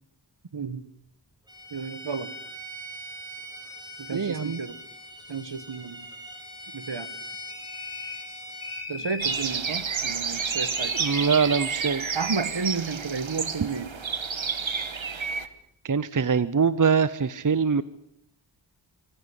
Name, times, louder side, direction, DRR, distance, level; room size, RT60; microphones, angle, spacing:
Bowed string instrument, 1.5-8.9, equal, 10° right, 5.5 m, -41 dB
voice 1, 1.7-2.3 4.0-4.8 5.3-6.0 6.7-7.1 8.9-11.1 12.1-13.9, right 5 dB, 65° right, 14 dB, 1.5 m, -32 dB
voice 2, 4.1-4.6 10.8-12.1 14.6-15.0 15.8-17.8, right 5 dB, 45° right, 16 dB, 0.7 m, -24 dB
sound 1, 7.5-8.3 8.6-9.6 10.5-11.6, left 4 dB, 50° left, 2.5 m, -38 dB
sound 2, 9.2-15.5, right 5 dB, 90° right, 1.4 m, -30 dB
24.5 x 15.5 x 8.2 m, 0.77 s
wide cardioid pair, 70°, 46 cm